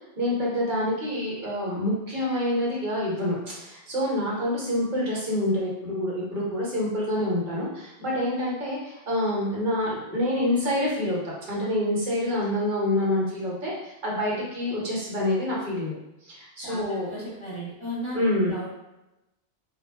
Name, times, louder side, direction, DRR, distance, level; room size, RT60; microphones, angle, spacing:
voice 1, 0.2-15.9 16.2-17.1 18.1-18.5, left 1 dB, 45° right, -5 dB, 0.9 m, -27 dB
voice 2, 16.6-18.7, equal, 35° left, -6 dB, 0.5 m, -36 dB
2.2 x 2.0 x 3.2 m, 0.93 s
omnidirectional pair, 1.2 m